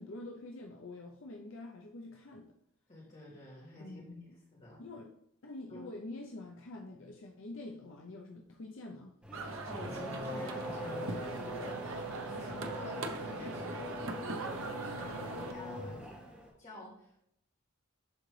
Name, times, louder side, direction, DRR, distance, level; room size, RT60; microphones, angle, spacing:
voice 1, 0.0-2.5 3.8-4.3 4.8-5.1 5.4-9.2, left 2 dB, 65° left, 0.6 m, -46 dB
voice 2, 2.9-4.8 5.7-5.9 9.4-13.8 14.4-16.2 16.6-17.2, left 1 dB, 35° left, 2.8 m, -49 dB
Race car auto racing / Accelerating revving vroom, 9.2-16.5, equal, 5° right, 1.6 m, -42 dB
sound 1, 9.3-15.5, right 3 dB, 70° right, 0.7 m, -41 dB
11.0 x 3.9 x 3.2 m
head